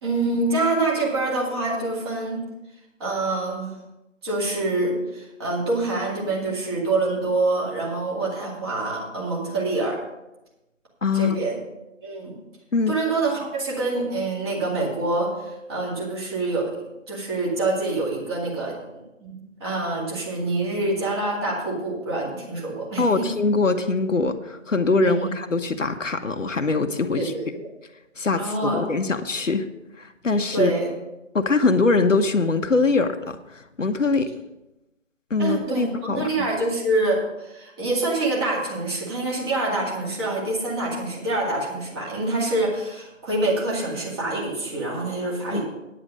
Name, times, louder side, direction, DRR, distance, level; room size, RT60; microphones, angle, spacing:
voice 1, 0.0-2.5 3.0-3.8 4.2-10.0 11.1-11.6 12.0-12.3 12.9-18.8 19.3-23.3 25.0-25.3 27.1-27.5 28.4-28.8 30.5-30.9 35.4-45.6, right 2 dB, 20° right, -4 dB, 2.2 m, -26 dB
voice 2, 11.0-11.4 12.7-12.9 23.0-27.3 28.2-29.7 30.0-30.7 31.3-34.3 35.3-36.5 45.5-45.6, left 3 dB, 70° left, 7 dB, 1.1 m, -23 dB
9.7 x 9.0 x 5.4 m, 0.97 s
figure-of-eight pair, 150°, 39 cm